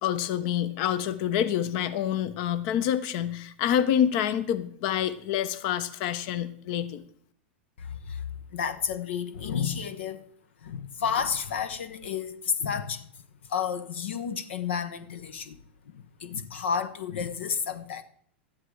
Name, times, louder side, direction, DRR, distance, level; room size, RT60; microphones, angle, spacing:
voice 1, 0.0-7.0, left 10 dB, 55° left, 1.0 m, -27 dB
voice 2, 7.8-8.2 8.5-10.3 10.6-13.1 13.5-18.0, left 7 dB, 80° left, 1.0 m, -31 dB
13.0 x 10.0 x 4.8 m
hypercardioid pair, 115°, 6 cm